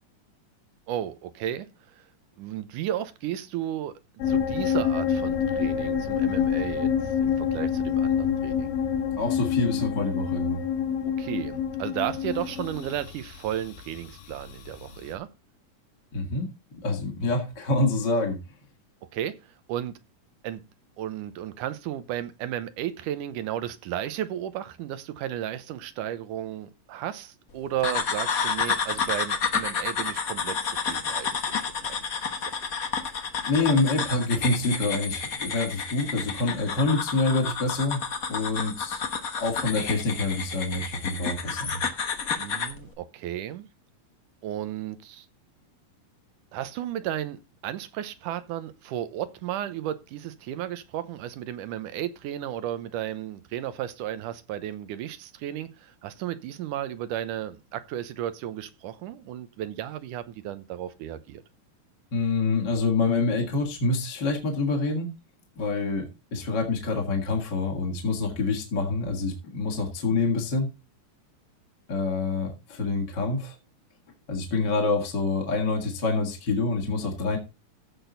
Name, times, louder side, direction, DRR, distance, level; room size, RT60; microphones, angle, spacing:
voice 1, 0.9-2.0 2.4-3.9 4.3-8.7 11.2-15.3 19.0-19.4 19.7-19.9 20.4-20.6 21.0-32.1 32.4-32.5 42.4-43.7 44.4-45.3 46.5-61.4, right 11 dB, 80° right, 2.4 m, -34 dB
sound 1, 4.2-15.1, left 8 dB, 80° left, 3.2 m, -27 dB
voice 2, 9.2-10.6 16.1-16.5 16.8-18.4 33.5-38.0 38.3-39.0 39.4-41.8 62.1-65.1 65.6-70.7 71.9-73.5 74.3-77.4, left 3 dB, 35° left, 2.3 m, -26 dB
sound 2, 27.8-42.8, left 6 dB, 65° left, 0.8 m, -30 dB
15.0 x 6.2 x 4.0 m
omnidirectional pair, 3.8 m